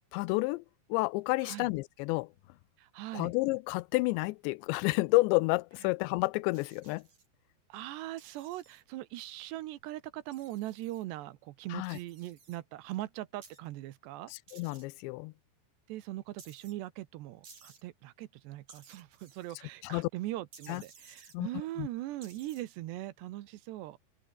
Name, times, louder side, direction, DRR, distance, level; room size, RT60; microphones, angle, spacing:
voice 1, 0.1-0.6 0.9-2.3 3.1-7.1 11.7-12.0 14.3-15.3 19.8-20.1 20.7-20.8 21.3-21.5 21.8-21.9, left 23 dB, 85° left, 2.8 m, -30 dB
voice 2, 2.8-3.3 7.7-14.3 15.9-24.0, right 16 dB, 75° right, 3.1 m, -40 dB
sound 1, 6.5-7.3 8.2-8.8 10.3-11.0 11.8-12.6 13.4-13.6 14.5-14.8 16.4-16.7 17.4-17.8 18.7-19.6 20.5-21.4 22.2-22.6, right 5 dB, 40° right, 5.9 m, -56 dB
open air
omnidirectional pair, 5.1 m